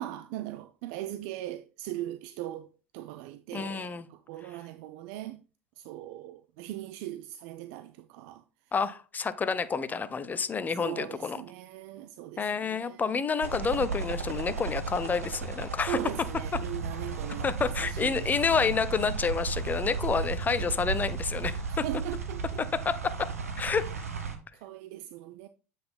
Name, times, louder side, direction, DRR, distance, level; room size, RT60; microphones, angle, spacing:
voice 1, 0.0-2.7 2.9-5.4 5.8-8.4 10.8-13.2 15.9-18.3 21.7-22.6 23.6-23.9 24.6-25.5, right 14 dB, 60° right, 0.3 m, -39 dB
voice 2, 3.5-4.1 8.7-11.4 12.4-16.0 17.4-21.8 22.6-23.3 23.6-23.9, left 5 dB, 20° left, 0.6 m, -29 dB
sound 1, 13.4-24.4, right 5 dB, 85° right, 0.9 m, -34 dB
7.7 x 5.4 x 2.2 m
figure-of-eight pair, 75°, 8 cm